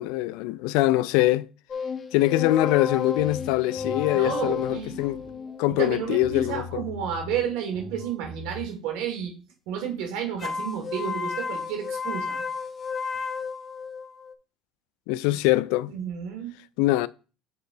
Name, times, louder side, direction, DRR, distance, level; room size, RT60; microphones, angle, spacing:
voice 1, 0.0-1.5 2.1-5.2 5.6-6.8 15.1-15.9 16.8-17.1, left 17 dB, 80° left, 0.3 m, -23 dB
sound 1, 1.7-7.1 10.4-14.3, left 5 dB, 35° left, 0.6 m, -33 dB
sound 2, 3.2-8.6, left 2 dB, 25° right, 1.7 m, -42 dB
voice 2, 4.1-5.0 5.8-9.3 9.7-12.4 15.3-15.4 15.9-16.5, right 8 dB, 80° right, 2.7 m, -31 dB
7.2 x 4.1 x 3.9 m
supercardioid pair, 85°, 0 cm